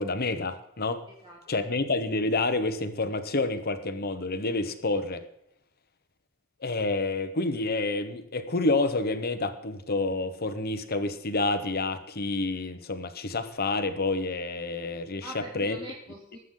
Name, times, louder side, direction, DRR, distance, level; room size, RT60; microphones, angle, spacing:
voice 1, 0.0-1.0 1.5-5.2 6.6-15.3 15.5-15.8, left 2 dB, 50° left, 9 dB, 1.2 m, -28 dB
voice 2, 1.1-1.7 15.2-16.4, right 2 dB, 25° right, -4 dB, 2.8 m, -44 dB
20.5 x 8.3 x 4.0 m, 0.82 s
head